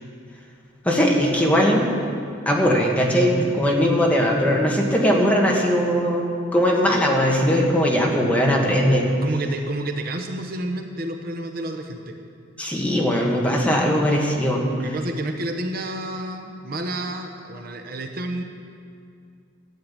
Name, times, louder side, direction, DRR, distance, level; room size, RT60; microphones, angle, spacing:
voice 1, 0.8-1.9 2.4-9.0 12.6-14.6, equal, 10° left, -2 dB, 1.5 m, -20 dB
voice 2, 3.2-3.5 9.2-12.1 14.8-18.4, right 1 dB, 50° right, 4 dB, 0.9 m, -30 dB
12.0 x 7.7 x 8.8 m, 2.4 s
head